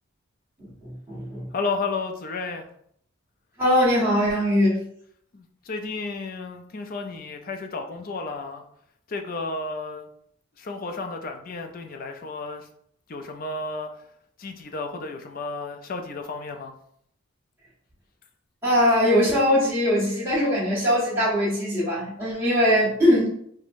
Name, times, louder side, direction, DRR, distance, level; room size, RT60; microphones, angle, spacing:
voice 1, 0.8-1.5 3.6-4.8 18.6-23.3, equal, 10° right, -10 dB, 1.3 m, -21 dB
voice 2, 1.5-2.7 5.3-8.6 9.1-10.1 10.6-12.7 13.1-14.0 14.4-16.7, left 3 dB, 40° left, 5 dB, 0.4 m, -32 dB
4.5 x 2.1 x 2.5 m, 0.66 s
head